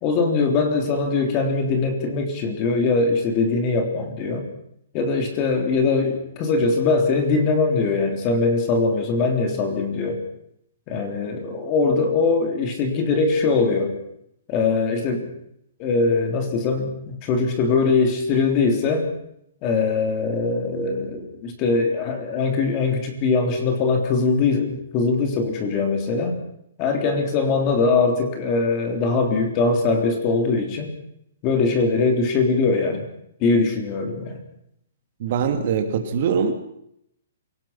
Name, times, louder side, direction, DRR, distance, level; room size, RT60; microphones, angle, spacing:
voice 1, 0.0-4.5 4.9-10.2 10.9-13.9 14.5-15.3 15.8-19.1 19.6-26.4 26.8-30.9 31.4-33.1 33.4-34.4, left 4 dB, 25° left, 5 dB, 3.6 m, -21 dB
voice 2, 35.2-36.5, right 6 dB, 45° right, 6 dB, 2.9 m, -22 dB
27.0 x 18.5 x 5.9 m, 0.74 s
hypercardioid pair, 165°, 0 cm